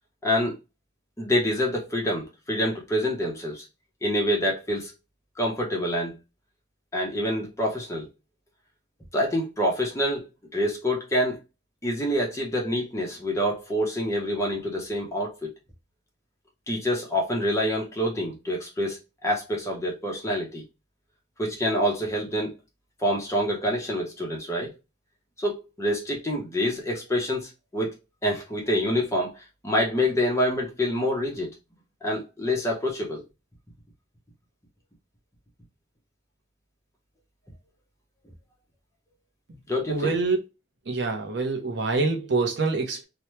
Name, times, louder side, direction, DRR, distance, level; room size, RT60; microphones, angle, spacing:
voice 1, 0.2-0.5 1.2-3.6 4.0-4.9 5.4-6.2 6.9-8.1 9.1-11.4 11.8-15.5 16.7-20.6 21.4-22.5 23.0-24.7 25.4-27.9 28.2-29.3 29.6-31.5 32.0-33.2 39.7-40.1, equal, 15° left, 0.9 m, -26 dB
voice 2, 39.9-40.4 40.9-43.0, right 3 dB, 60° right, 0.7 m, -25 dB
2.9 x 2.2 x 3.1 m
head